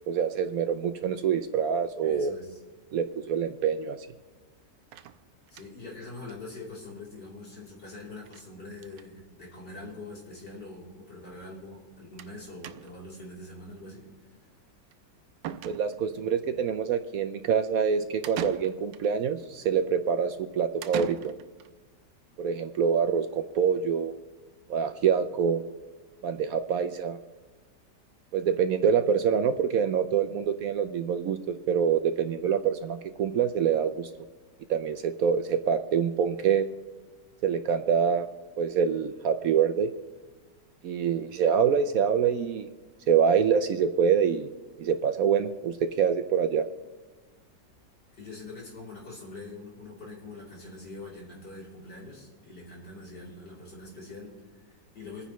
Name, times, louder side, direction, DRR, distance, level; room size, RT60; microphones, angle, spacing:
voice 1, 0.1-2.3 2.9-4.1 15.6-21.3 22.4-24.1 24.7-25.6 26.2-27.2 28.3-34.1 34.7-36.7 37.4-38.3 38.6-39.9 40.8-42.7 43.1-44.5 44.8-46.7, right 7 dB, 70° right, 10 dB, 0.9 m, -25 dB
voice 2, 2.0-2.6 5.5-14.4 48.1-55.3, left 2 dB, 70° left, -4 dB, 3.9 m, -44 dB
sound 1, 4.9-5.9 6.3-6.4 6.7-6.8 7.0-7.1 8.3-8.5 8.7-9.1 10.0-10.1 10.3-10.4 12.2-12.4 12.6-13.1 14.9-15.0 15.4-16.2 18.2-19.1 20.8-21.7, right 10 dB, 85° right, 1.3 m, -40 dB
27.0 x 9.8 x 3.1 m, 1.3 s
omnidirectional pair, 1.9 m